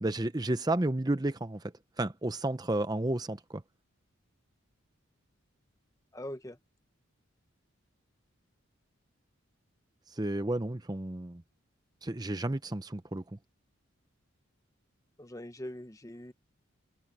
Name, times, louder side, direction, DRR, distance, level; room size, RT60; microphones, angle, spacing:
voice 1, 0.0-1.6 2.0-3.6 10.2-11.4 12.0-13.2, right 1 dB, 20° right, 0.7 m, -31 dB
voice 2, 6.1-6.6 15.2-16.3, left 1 dB, 15° left, 0.9 m, -42 dB
head